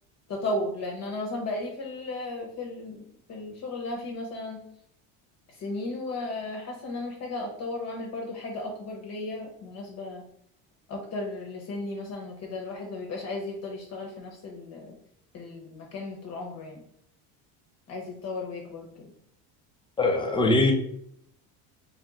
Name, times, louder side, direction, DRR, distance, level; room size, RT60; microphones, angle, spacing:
voice 1, 0.3-4.6 5.5-10.3 10.9-15.0 15.3-16.8 17.9-19.1, left 2 dB, 45° left, 0 dB, 0.9 m, -35 dB
voice 2, 20.0-20.7, left 2 dB, 15° left, 2 dB, 0.6 m, -22 dB
3.3 x 2.9 x 3.7 m, 0.70 s
cardioid pair, 125°, 38 cm